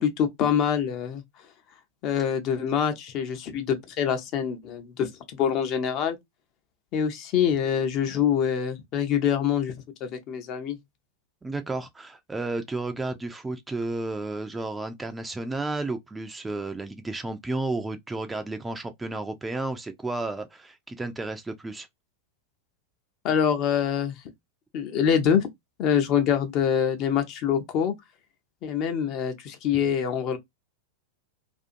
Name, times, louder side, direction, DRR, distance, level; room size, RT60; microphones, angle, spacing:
voice 1, 0.0-1.2 2.0-6.2 6.9-9.7 10.0-10.8 23.2-24.2 24.7-25.5 25.8-27.9 28.6-30.4, left 8 dB, 40° left, 0.6 m, -25 dB
voice 2, 11.4-21.9, right 2 dB, 10° right, 0.4 m, -32 dB
2.6 x 2.4 x 2.4 m
figure-of-eight pair, 90°, 0 cm